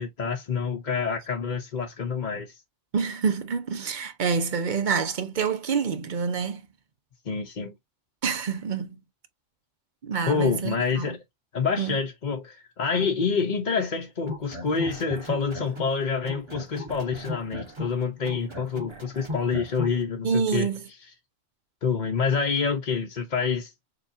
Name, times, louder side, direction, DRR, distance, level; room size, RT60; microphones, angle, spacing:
voice 1, 0.0-2.5 7.3-7.7 10.3-11.2 11.5-20.7 21.8-23.7, left 5 dB, 45° left, 0.8 m, -27 dB
voice 2, 2.9-6.6 8.2-9.0 10.0-11.2 11.8-12.0 20.2-20.9, right 6 dB, 45° right, 0.7 m, -27 dB
sound 1, 14.2-16.0 16.2-20.0, left 1 dB, 25° right, 1.1 m, -36 dB
6.7 x 2.4 x 2.6 m
omnidirectional pair, 1.3 m